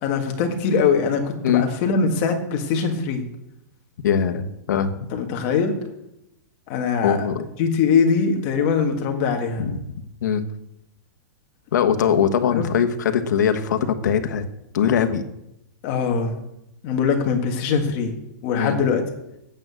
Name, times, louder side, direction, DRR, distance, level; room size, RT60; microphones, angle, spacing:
voice 1, 0.0-3.2 5.1-5.8 6.7-7.3 7.6-9.7 12.5-12.7 15.8-16.4 16.8-18.2 18.4-19.0, left 5 dB, 30° left, 3 dB, 1.5 m, -22 dB
voice 2, 4.0-5.0 7.0-7.4 9.6-9.8 10.2-10.4 11.7-14.5 14.7-15.2 18.6-18.8, left 8 dB, 65° left, 8 dB, 1.3 m, -21 dB
9.0 x 7.5 x 8.0 m, 0.86 s
supercardioid pair, 180°, 10 cm